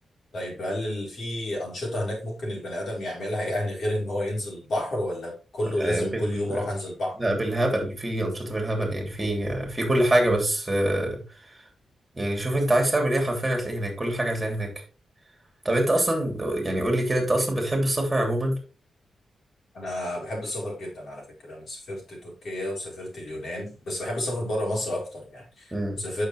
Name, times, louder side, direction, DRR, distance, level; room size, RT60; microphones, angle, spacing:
voice 1, 0.3-7.2 19.7-26.3, left 1 dB, 55° left, -2 dB, 4.5 m, -31 dB
voice 2, 5.8-6.6 7.2-11.2 12.1-14.7 15.6-18.6 25.7-26.0, right 1 dB, 15° right, 0 dB, 3.0 m, -25 dB
9.0 x 6.6 x 3.2 m, 0.34 s
wide cardioid pair, 155°, 0 cm